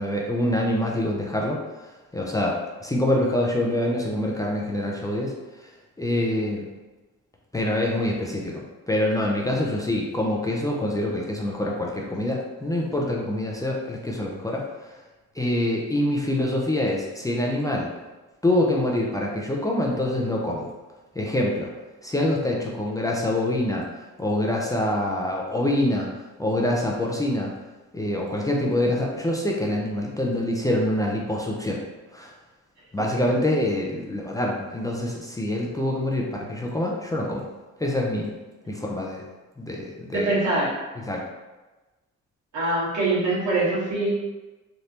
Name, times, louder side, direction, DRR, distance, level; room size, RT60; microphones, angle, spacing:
voice 1, 0.0-1.6 2.1-5.3 5.6-5.7 6.0-6.7 7.5-15.0 15.3-17.9 18.4-20.7 21.1-21.7 22.0-23.9 24.2-26.1 26.4-27.5 27.9-31.8 32.1-32.3 32.9-37.5 37.8-38.3 38.7-39.2 39.6-40.3 41.0-41.2, left 1 dB, 10° left, -2 dB, 0.5 m, -25 dB
voice 2, 40.1-40.7 42.5-44.1, right 2 dB, 80° right, -7 dB, 1.5 m, -23 dB
3.3 x 2.6 x 2.8 m, 1.2 s
cardioid pair, 90°, 30 cm